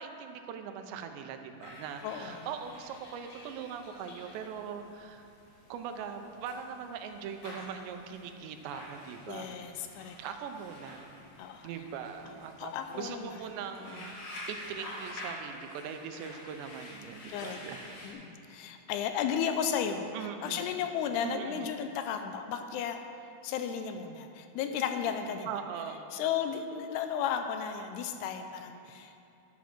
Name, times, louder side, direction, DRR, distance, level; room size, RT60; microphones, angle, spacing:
voice 1, 0.0-5.3 5.7-9.6 10.2-11.1 11.6-17.8 20.1-20.7 21.2-21.7 25.5-26.1, right 7 dB, 90° right, 6 dB, 3.0 m, -41 dB
sound 1, 1.6-18.1, left 1 dB, 45° left, 2.0 m, -48 dB
voice 2, 2.0-2.5 9.3-10.2 11.4-11.7 12.6-13.4 17.3-17.6 18.0-20.1 20.4-23.0 23.4-25.5 26.1-29.1, left 8 dB, 80° left, 6 dB, 2.5 m, -34 dB
11.5 x 8.4 x 6.1 m, 2.7 s
omnidirectional pair, 4.9 m